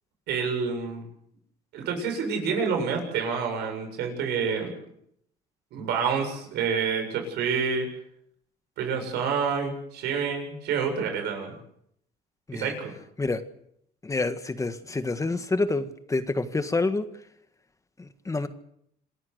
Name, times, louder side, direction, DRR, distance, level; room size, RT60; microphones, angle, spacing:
voice 1, 0.3-1.0 1.7-4.7 5.7-7.9 8.8-11.6 12.5-12.9, right 6 dB, 80° right, 5 dB, 7.8 m, -28 dB
voice 2, 14.0-17.0 18.0-18.5, left 3 dB, 20° left, 10 dB, 1.6 m, -28 dB
27.5 x 15.5 x 8.1 m, 0.71 s
cardioid pair, 110°, 17 cm